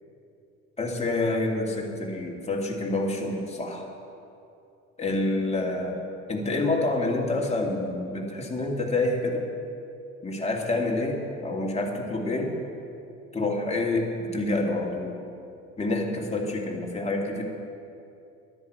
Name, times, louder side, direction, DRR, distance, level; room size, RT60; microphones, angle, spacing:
voice 1, 0.8-3.9 5.0-6.0 6.3-9.5 10.2-12.5 13.3-15.2 15.8-17.4, left 2 dB, 15° left, -1 dB, 2.3 m, -27 dB
10.5 x 8.2 x 8.0 m, 2.6 s
hypercardioid pair, 60°, 41 cm